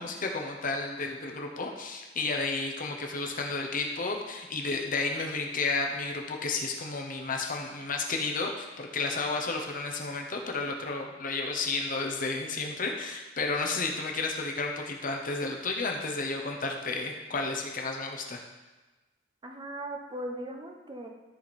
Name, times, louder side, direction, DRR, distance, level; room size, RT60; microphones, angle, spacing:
voice 1, 0.0-18.4, left 3 dB, 45° left, 2 dB, 1.0 m, -32 dB
voice 2, 19.4-21.1, right 1 dB, 25° right, 2 dB, 1.0 m, -38 dB
14.0 x 5.0 x 4.3 m, 1.2 s
head